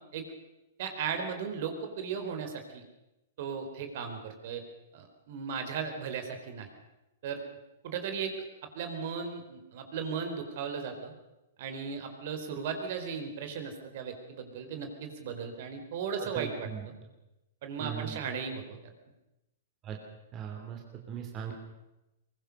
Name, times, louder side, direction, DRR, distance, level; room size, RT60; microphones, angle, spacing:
voice 1, 0.8-2.8 3.4-4.6 4.9-6.7 7.2-7.4 7.8-8.3 8.7-11.1 11.6-16.7 17.6-18.8, right 6 dB, 55° right, 6 dB, 4.6 m, -36 dB
voice 2, 16.2-16.9 17.8-18.2 19.8-20.0 20.3-20.8 21.1-21.5, right 8 dB, 25° right, 2 dB, 3.2 m, -38 dB
22.5 x 21.0 x 6.7 m, 0.97 s
hypercardioid pair, 150°, 0 cm